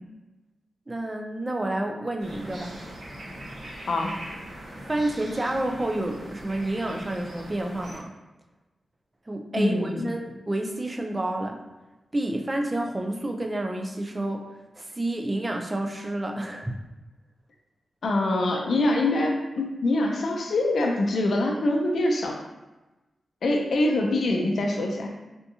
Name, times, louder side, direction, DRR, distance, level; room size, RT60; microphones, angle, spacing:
voice 1, 0.9-2.8 4.8-8.1 9.3-11.6 12.1-14.5 14.8-16.7, right 1 dB, 15° right, 3 dB, 0.3 m, -29 dB
sound 1, 2.2-8.0, right 1 dB, 65° right, 1.1 m, -41 dB
voice 2, 9.5-10.1 18.0-22.4 23.4-25.1, left 2 dB, 65° left, 1 dB, 0.4 m, -24 dB
3.4 x 2.7 x 2.7 m, 1.1 s
wide cardioid pair, 165°, 0 cm